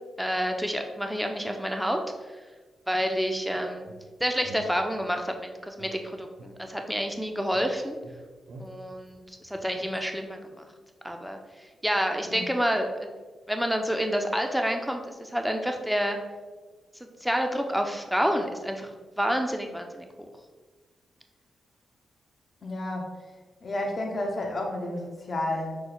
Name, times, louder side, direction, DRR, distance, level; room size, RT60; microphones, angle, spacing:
voice 1, 0.2-2.0 2.9-3.9 4.2-8.0 8.6-10.7 11.0-11.4 11.8-13.1 13.5-16.2 17.2-18.9 19.2-20.1, equal, ahead, 4 dB, 0.5 m, -28 dB
sound 1, 3.9-5.3 5.8-7.2 7.5-10.1, right 3 dB, 60° right, 0.5 m, -49 dB
voice 2, 22.6-23.3 23.6-25.8, left 1 dB, 40° left, 1 dB, 0.8 m, -31 dB
6.0 x 2.2 x 3.9 m, 1.3 s
cardioid pair, 105°, 0 cm